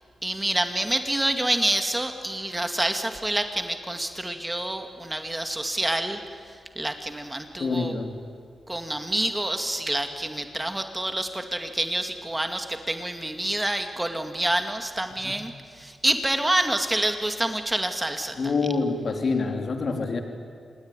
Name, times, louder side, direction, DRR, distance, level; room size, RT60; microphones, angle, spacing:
voice 1, 0.2-6.2 6.8-7.9 8.7-18.5, right 1 dB, 15° right, 6 dB, 2.2 m, -27 dB
voice 2, 7.6-8.2 15.2-15.3 18.4-20.2, left 4 dB, 55° left, 5 dB, 3.0 m, -26 dB
27.0 x 20.0 x 10.0 m, 2.2 s
cardioid pair, 80°, 0 cm